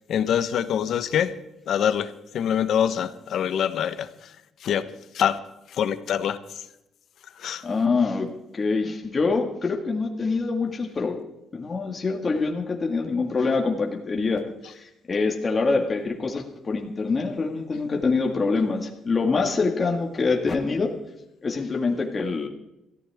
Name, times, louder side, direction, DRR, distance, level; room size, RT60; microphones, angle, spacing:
voice 1, 0.1-1.3 1.7-4.1 4.6-4.8 5.1-5.4 5.7-6.4 7.4-7.6, left 9 dB, 70° left, 12 dB, 1.1 m, -24 dB
voice 2, 7.6-8.3 8.5-11.2 11.5-14.4 14.7-20.9 21.4-22.5, left 4 dB, 35° left, 1 dB, 2.0 m, -25 dB
23.5 x 14.5 x 3.6 m, 0.88 s
cardioid pair, 90°, 0 cm